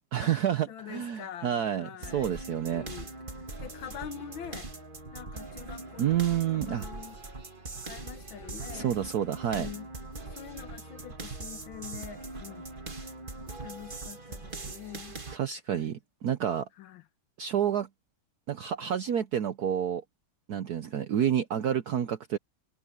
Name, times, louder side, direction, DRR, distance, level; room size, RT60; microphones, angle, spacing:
voice 1, 0.0-2.9 6.0-6.9 8.7-9.7 15.3-16.7 17.4-17.9 18.5-20.0 20.5-22.4, right 9 dB, 60° right, 1.1 m, -29 dB
voice 2, 0.7-2.4 2.7-4.7 5.1-7.2 7.8-9.0 9.5-9.9 10.3-12.7 13.6-15.2 15.7-16.0 16.8-17.1, left 9 dB, 75° left, 2.0 m, -45 dB
sound 1, 2.0-15.4, right 2 dB, 25° right, 2.1 m, -41 dB
omnidirectional pair, 2.2 m